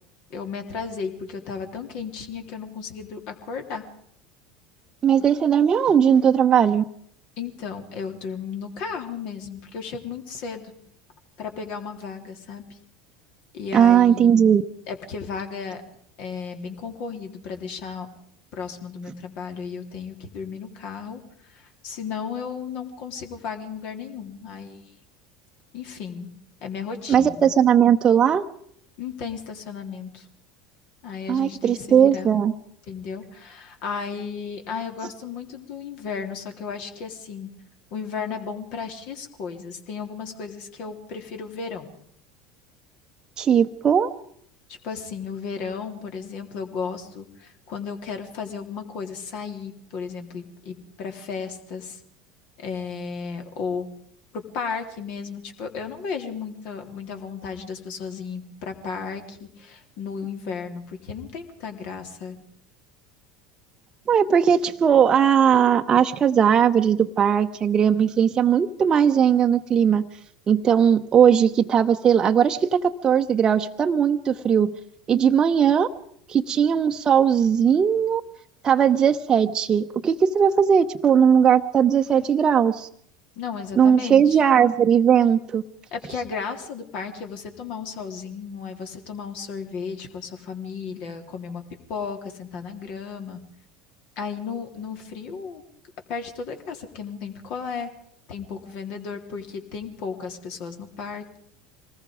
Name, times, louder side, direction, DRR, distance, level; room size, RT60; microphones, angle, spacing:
voice 1, 0.3-3.8 7.4-10.7 11.4-12.8 13.5-14.5 14.9-15.8 16.2-18.1 18.6-21.2 21.5-24.8 25.7-26.3 26.6-27.5 29.0-30.3 31.0-32.3 32.9-37.5 37.9-41.9 44.7-52.0 52.6-53.9 54.3-62.4 83.4-84.4 85.9-91.6 91.9-93.4 94.2-95.6 96.1-97.9 98.3-101.4, left 5 dB, 55° left, 5 dB, 3.4 m, -34 dB
voice 2, 5.0-6.8 13.7-14.6 27.1-28.4 31.3-32.5 43.4-44.1 64.1-70.1 70.5-74.7 75.1-75.9 76.3-78.2 78.6-82.9 83.8-85.6, right 8 dB, 30° right, 4 dB, 0.9 m, -18 dB
26.0 x 19.5 x 5.2 m, 0.67 s
figure-of-eight pair, 75°, 2 cm